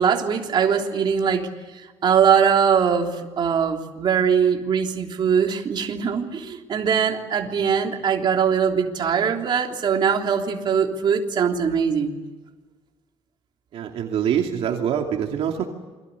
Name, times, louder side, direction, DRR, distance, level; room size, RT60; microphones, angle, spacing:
voice 1, 0.0-1.5 1.8-12.2, right 7 dB, 40° right, 2 dB, 3.4 m, -21 dB
voice 2, 13.7-15.7, right 8 dB, 60° right, 2 dB, 2.7 m, -24 dB
29.0 x 23.0 x 8.4 m, 1.3 s
cardioid pair, 150°, 11 cm